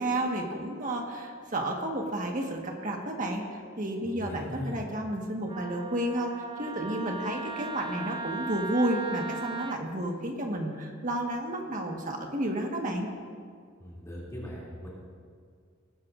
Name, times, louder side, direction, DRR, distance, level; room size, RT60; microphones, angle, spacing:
voice 1, 0.0-3.4 3.8-6.3 6.6-13.1, right 1 dB, 40° right, 1 dB, 1.5 m, -31 dB
voice 2, 4.0-4.8 13.8-14.9, equal, 15° left, -7 dB, 2.8 m, -39 dB
Wind instrument woodwind instrument, 5.5-9.8, right 3 dB, 25° right, 0.5 m, -37 dB
19.5 x 13.0 x 2.6 m, 2.1 s
head